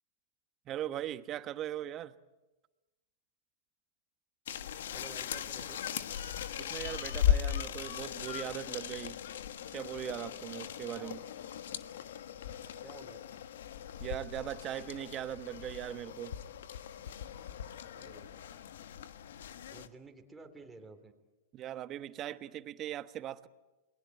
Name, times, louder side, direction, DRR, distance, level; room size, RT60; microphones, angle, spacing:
voice 1, 0.7-2.1 6.6-9.2 9.7-11.2 14.0-16.4 21.5-23.5, right 12 dB, 35° right, 1.2 m, -39 dB
sound 1, 4.5-19.9, left 10 dB, 75° left, 1.3 m, -38 dB
voice 2, 4.9-5.8 10.9-11.2 12.8-13.2 17.9-18.5 19.7-21.1, right 3 dB, 10° right, 3.2 m, -52 dB
28.0 x 21.5 x 9.1 m
hypercardioid pair, 120°, 0 cm